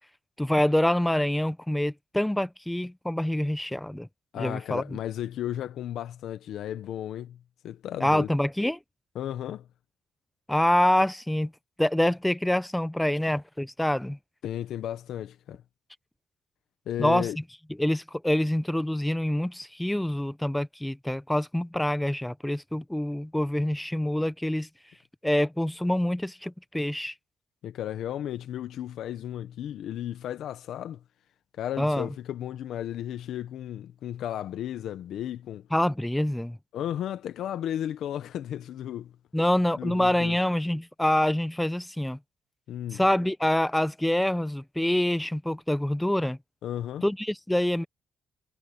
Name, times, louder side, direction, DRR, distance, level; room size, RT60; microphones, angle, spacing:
voice 1, 0.4-4.1 4.4-4.8 8.0-8.8 10.5-11.5 11.8-14.2 17.0-17.4 17.8-24.7 25.2-27.1 31.8-32.1 35.7-36.6 39.3-42.2 42.9-46.4 47.0-47.8, left 1 dB, 5° left, 0.8 m, -26 dB
voice 2, 4.3-7.4 7.6-8.3 9.1-9.7 14.4-15.6 16.9-17.4 27.6-31.0 31.6-35.7 36.7-39.1 39.8-40.3 42.7-43.0 46.6-47.0, left 11 dB, 75° left, 1.2 m, -34 dB
cardioid pair, 90°, 0 cm